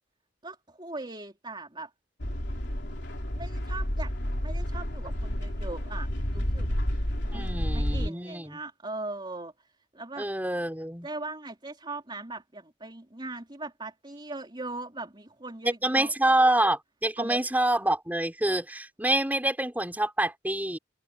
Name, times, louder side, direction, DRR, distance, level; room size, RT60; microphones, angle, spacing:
voice 1, 0.4-1.9 3.4-4.1 4.4-6.7 7.3-10.3 11.0-16.1 17.2-17.5, right 2 dB, 25° right, 3.6 m, -40 dB
sound 1, 2.2-8.1, equal, 65° left, 3.5 m, -30 dB
voice 2, 7.3-8.6 10.2-11.1 15.8-20.8, right 1 dB, 10° right, 4.6 m, -26 dB
head